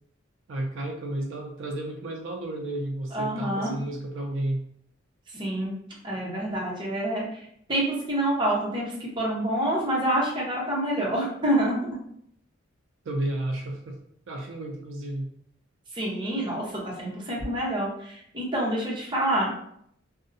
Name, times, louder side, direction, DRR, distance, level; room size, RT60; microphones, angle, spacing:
voice 1, 0.5-4.6 13.0-14.0 14.3-15.3, right 1 dB, 75° right, 1 dB, 0.4 m, -32 dB
voice 2, 3.1-3.7 5.3-5.7 6.0-7.4 7.7-11.8 15.9-19.5, right 1 dB, 25° right, -4 dB, 0.7 m, -27 dB
2.5 x 2.0 x 2.6 m, 0.70 s
head